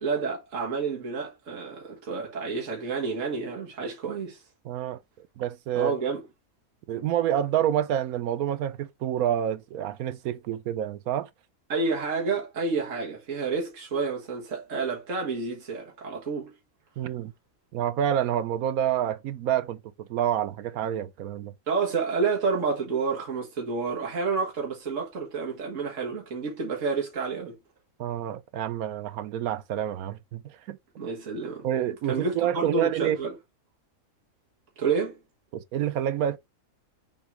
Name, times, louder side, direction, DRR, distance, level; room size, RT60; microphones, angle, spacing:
voice 1, 0.0-4.4 5.8-6.2 11.7-16.5 21.7-27.5 31.0-31.7 32.1-33.4 34.8-35.2, right 4 dB, 60° right, 1.9 m, -29 dB
voice 2, 4.6-5.0 5.4-6.0 6.9-11.3 17.0-17.3 17.7-21.5 28.0-30.8 31.6-33.2 35.5-36.4, right 10 dB, 90° right, 1.2 m, -28 dB
7.1 x 2.8 x 4.7 m
omnidirectional pair, 1.5 m